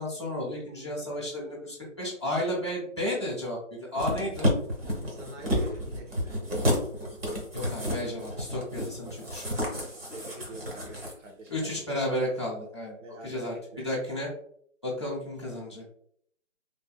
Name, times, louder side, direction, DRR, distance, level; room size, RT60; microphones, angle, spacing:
voice 1, 0.0-4.5 7.5-9.5 11.5-13.0 13.2-13.5 13.8-14.3 14.8-15.8, left 1 dB, 25° left, -5 dB, 0.6 m, -32 dB
sound 1, 4.0-11.1 11.5-11.6, equal, 50° right, 1.0 m, -31 dB
voice 2, 5.1-6.4 10.1-11.8 13.0-13.9, right 1 dB, 65° right, 2 dB, 1.0 m, -45 dB
3.3 x 2.1 x 2.2 m, 0.65 s
hypercardioid pair, 170°, 39 cm